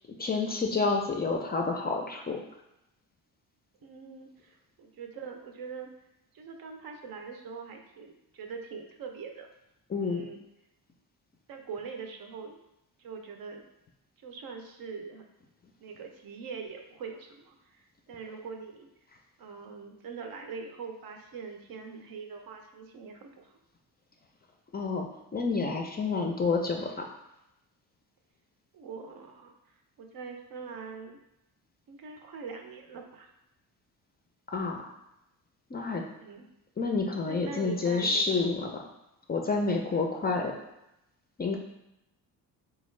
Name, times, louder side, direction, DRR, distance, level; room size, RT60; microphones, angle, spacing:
voice 1, 0.2-2.4 9.9-10.2 24.7-27.1 34.5-34.9 35.7-36.0 36.8-38.8 39.3-40.5 41.4-41.6, left 4 dB, 25° left, 2 dB, 0.4 m, -29 dB
voice 2, 3.8-5.9 6.3-9.5 10.0-10.4 11.5-12.6 13.0-13.6 14.2-15.2 15.8-18.9 19.4-23.6 28.7-29.5 30.0-31.2 31.9-33.3 36.2-36.5 37.2-38.6, right 5 dB, 60° right, 4 dB, 0.6 m, -42 dB
3.4 x 2.3 x 3.2 m, 0.87 s
cardioid pair, 80°, 39 cm